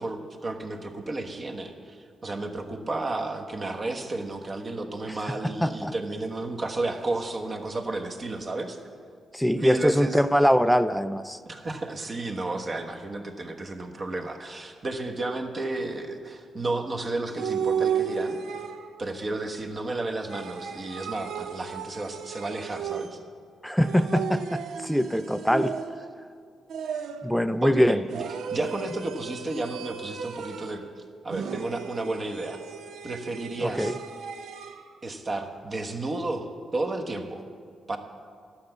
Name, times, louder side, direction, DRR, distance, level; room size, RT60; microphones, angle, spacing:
voice 1, 0.0-8.8 9.6-10.2 11.5-18.4 19.0-23.2 27.6-28.2 28.5-30.9 31.2-32.6 33.0-34.0 35.0-37.4 37.9-38.0, right 2 dB, 40° right, 3 dB, 1.2 m, -32 dB
voice 2, 5.4-5.9 9.3-11.4 23.6-25.7 27.2-28.0 33.6-33.9, equal, ahead, 12 dB, 0.4 m, -23 dB
sound 1, 17.4-19.1 20.3-23.4 23.8-26.2 26.7-27.4 28.1-30.9 31.3-34.8, right 7 dB, 80° right, 0.6 m, -34 dB
11.5 x 5.9 x 7.9 m, 2.1 s
cardioid pair, 80°, 0 cm